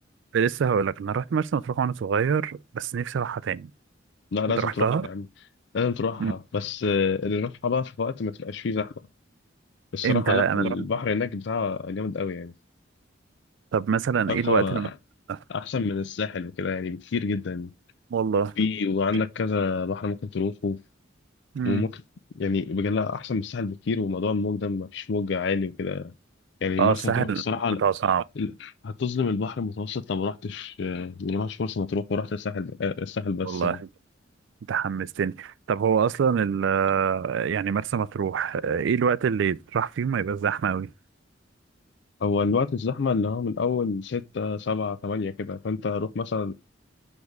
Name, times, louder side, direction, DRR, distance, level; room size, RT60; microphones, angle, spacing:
voice 1, 0.3-3.7 4.6-5.1 6.2-6.3 10.0-10.8 13.7-14.9 15.3-15.4 18.1-18.5 21.5-21.9 26.8-27.4 27.8-28.2 33.4-33.9 34.7-40.9, right 7 dB, 65° right, 0.3 m, -25 dB
voice 2, 4.3-5.2 5.7-8.9 9.9-12.5 14.3-14.9 15.5-17.7 18.6-20.8 21.6-21.9 22.4-26.1 26.6-27.8 28.4-33.8 42.2-46.5, left 4 dB, 60° left, 0.5 m, -28 dB
6.3 x 3.5 x 4.8 m
head